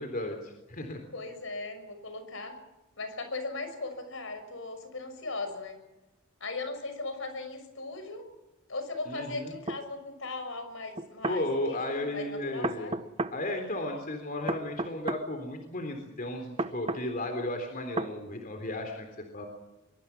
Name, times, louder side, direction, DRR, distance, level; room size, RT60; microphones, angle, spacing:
voice 1, 0.0-1.0 9.1-9.5 11.3-13.0 13.3-19.1 19.3-19.5, left 1 dB, 45° left, 5 dB, 3.7 m, -34 dB
voice 2, 1.1-2.6 3.0-5.8 6.4-8.2 8.7-12.9, left 3 dB, 70° left, 8 dB, 6.1 m, -38 dB
sound 1, 9.7-9.8 11.0-11.4 12.6-13.4 14.5-15.2 16.6-17.1 18.0-18.1, right 2 dB, 30° right, 1.0 m, -32 dB
23.5 x 23.5 x 6.0 m, 1.0 s
head